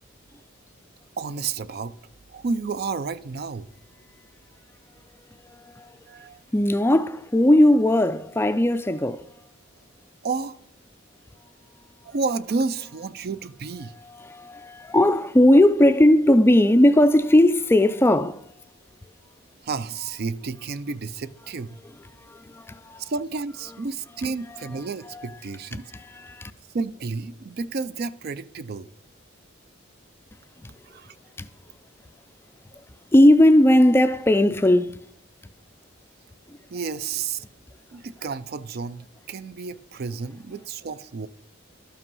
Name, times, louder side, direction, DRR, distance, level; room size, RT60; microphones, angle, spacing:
voice 1, 1.2-1.9 2.3-3.7 6.1-6.4 10.2-10.6 12.0-13.9 19.6-21.8 23.0-25.9 26.7-28.9 30.9-31.1 36.7-37.4 37.9-41.3, right 4 dB, 50° right, 0.4 m, -31 dB
voice 2, 5.5-6.0 6.5-9.2 14.0-18.4 22.2-23.0 25.1-25.3 25.7-26.5 30.6-30.7 31.4-31.5 33.1-35.0, left 1 dB, 10° left, 0.4 m, -18 dB
12.5 x 5.7 x 5.4 m
head